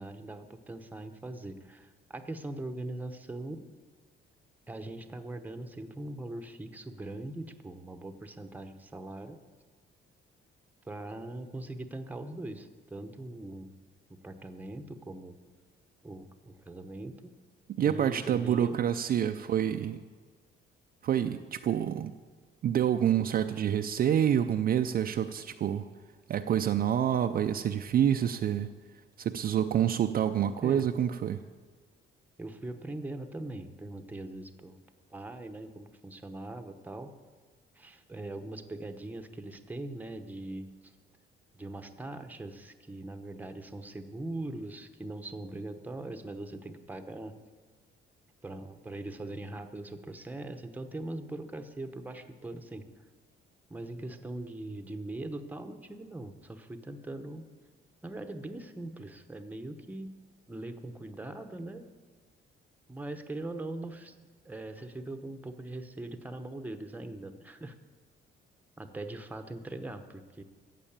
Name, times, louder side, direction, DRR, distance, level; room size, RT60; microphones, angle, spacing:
voice 1, 0.0-3.7 4.7-9.4 10.9-13.8 14.1-15.4 16.0-17.3 17.8-18.8 30.6-30.9 32.4-34.8 35.1-37.1 37.7-40.9 41.5-47.3 48.4-52.9 53.7-57.4 58.0-60.2 60.5-61.9 62.9-64.1 64.4-67.7 68.8-70.4, right 2 dB, 10° right, 7 dB, 0.9 m, -41 dB
voice 2, 17.7-20.0 21.0-22.1 22.6-25.9 26.3-28.7 29.2-31.4, right 9 dB, 45° right, 7 dB, 0.5 m, -27 dB
14.5 x 7.6 x 8.7 m, 1.4 s
cardioid pair, 145°, 21 cm